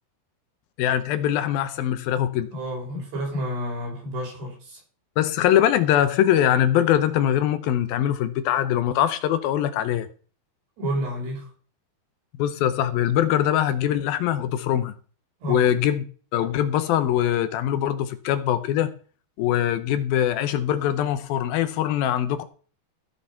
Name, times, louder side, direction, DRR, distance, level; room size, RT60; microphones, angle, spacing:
voice 1, 0.8-2.5 5.2-10.1 12.4-14.9 15.5-16.0 16.3-18.9 19.4-22.4, left 11 dB, 75° left, 2.5 m, -22 dB
voice 2, 2.5-4.8 10.8-11.5 15.4-15.7, equal, 90° right, 8.4 m, -30 dB
16.0 x 6.7 x 5.7 m
omnidirectional pair, 4.6 m